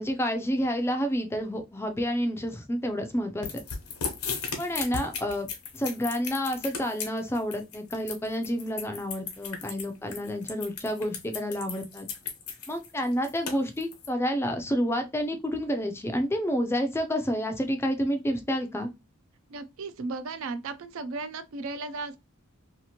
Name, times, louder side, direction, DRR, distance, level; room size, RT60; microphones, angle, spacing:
voice 1, 0.0-3.6 4.6-5.5 5.7-12.1 12.7-18.9, equal, 10° left, 0.3 m, -29 dB
sound 1, 3.4-14.1, left 6 dB, 90° left, 0.8 m, -35 dB
voice 2, 19.5-22.2, right 3 dB, 65° right, 0.4 m, -35 dB
2.8 x 2.4 x 2.8 m
head